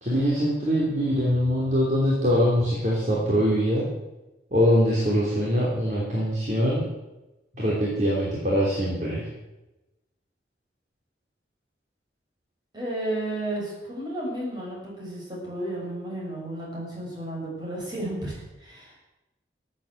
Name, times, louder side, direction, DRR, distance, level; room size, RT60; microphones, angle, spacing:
voice 1, 0.0-3.9 4.5-6.8 7.6-9.3, equal, 45° right, -4 dB, 3.3 m, -23 dB
voice 2, 12.7-19.0, right 1 dB, 25° right, -4 dB, 6.5 m, -33 dB
14.5 x 8.8 x 8.0 m, 1.0 s
head